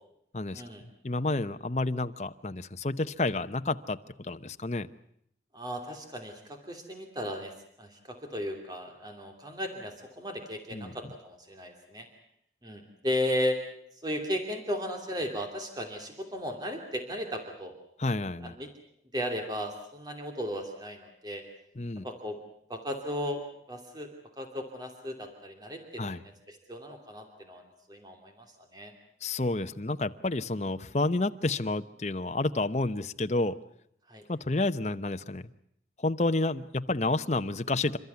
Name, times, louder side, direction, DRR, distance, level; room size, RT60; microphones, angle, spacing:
voice 1, 0.5-0.8 5.5-7.5 7.8-12.1 12.6-13.6 14.0-17.7 18.4-18.7 19.1-21.4 22.0-22.4 22.7-23.4 23.7-24.1 24.4-27.6 27.9-28.4 28.7-28.9 34.1-34.2, equal, 25° right, 4 dB, 2.8 m, -35 dB
voice 2, 1.0-4.9 10.7-11.0 18.0-18.5 21.8-22.0 26.0-26.2 29.2-33.5 34.3-35.5 36.0-38.0, left 2 dB, 40° left, 10 dB, 0.8 m, -30 dB
28.5 x 13.5 x 9.5 m, 0.73 s
head